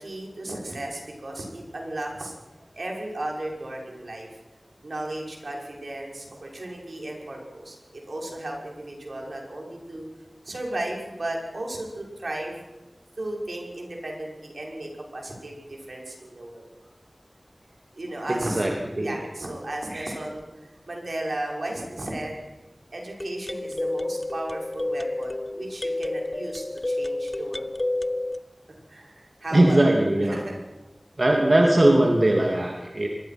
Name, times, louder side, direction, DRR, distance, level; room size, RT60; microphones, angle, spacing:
voice 1, 0.0-2.4 2.7-4.3 4.8-10.1 10.4-12.6 13.2-16.7 18.0-18.7 19.0-22.4 22.9-27.7 28.9-30.6, right 1 dB, 80° right, 0 dB, 6.3 m, -35 dB
voice 2, 18.3-18.7 19.0-19.2 19.9-20.1 29.5-30.4 31.2-33.1, right 1 dB, 55° right, 0 dB, 2.8 m, -20 dB
sound 1, 20.4-20.5 23.2-28.4, left 2 dB, 45° left, 0.7 m, -30 dB
25.0 x 20.5 x 6.1 m, 1.1 s
wide cardioid pair, 60°, 0 cm